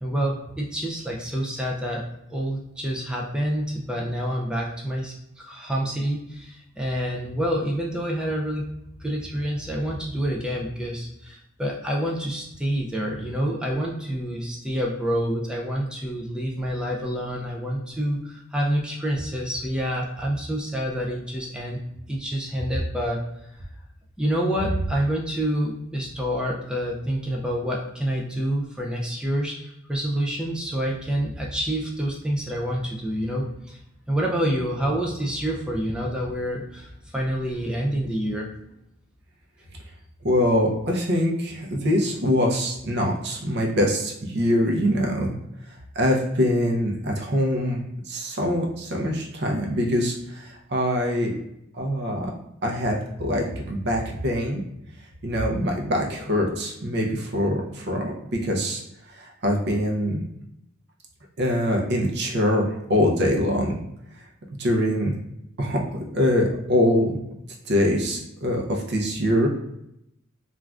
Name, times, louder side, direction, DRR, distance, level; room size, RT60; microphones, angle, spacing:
voice 1, 0.0-8.7 9.0-21.8 22.1-23.3 24.2-33.8 34.1-38.5, equal, 5° right, -2 dB, 0.3 m, -27 dB
voice 2, 40.2-45.3 46.0-47.8 48.1-51.3 51.8-52.3 52.6-54.6 55.2-58.1 58.4-58.8 59.2-60.2 61.4-63.8 64.6-65.1 65.6-67.2 67.7-69.5, equal, 55° right, 0 dB, 0.6 m, -23 dB
3.3 x 2.4 x 2.3 m, 0.80 s
head